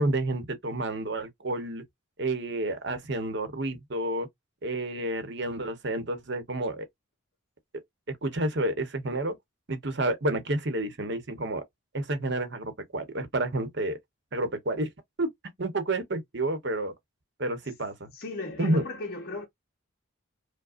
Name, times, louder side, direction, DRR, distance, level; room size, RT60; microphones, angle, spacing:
voice 1, 0.0-1.8 2.2-4.3 4.6-6.8 8.2-9.4 9.7-11.6 11.9-14.0 14.3-14.9 15.2-15.3 15.6-16.9 17.4-18.1 18.6-18.8, right 1 dB, 55° right, 1.0 m, -30 dB
voice 2, 18.1-19.5, left 3 dB, 45° left, 0.8 m, -36 dB
4.9 x 2.2 x 2.5 m
head